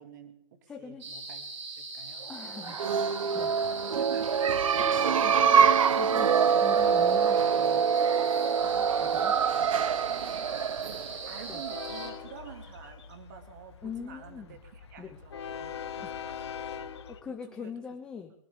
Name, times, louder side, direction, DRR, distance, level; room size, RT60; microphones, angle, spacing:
voice 1, 0.0-1.5 1.8-3.4 3.8-5.0 9.6-16.9 17.3-17.7, right 8 dB, 35° right, 5 dB, 2.2 m, -49 dB
voice 2, 0.7-1.1 2.3-2.8 3.3-3.5 4.6-9.4 11.5-11.6 13.8-14.6 15.0-15.2 16.0-16.1 17.1-18.3, left 6 dB, 5° left, 2 dB, 0.5 m, -43 dB
sound 1, 1.0-12.1, right 3 dB, 65° right, 6.6 m, -41 dB
sound 2, 2.6-12.1, right 7 dB, 80° right, 0.6 m, -25 dB
Train, 8.6-17.2, left 7 dB, 55° left, 1.5 m, -43 dB
24.5 x 12.0 x 3.5 m, 0.74 s
hypercardioid pair, 170°, 17 cm